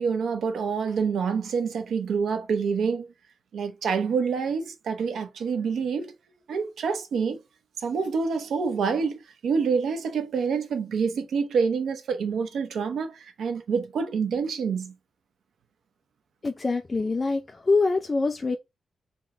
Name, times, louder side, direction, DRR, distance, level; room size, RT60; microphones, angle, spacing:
voice 1, 0.0-3.1 3.5-6.1 6.5-7.4 7.8-14.9, right 5 dB, 85° right, 0.9 m, -27 dB
voice 2, 16.4-18.6, left 3 dB, 30° left, 0.5 m, -25 dB
3.6 x 3.1 x 4.8 m
wide cardioid pair, 125°, 0 cm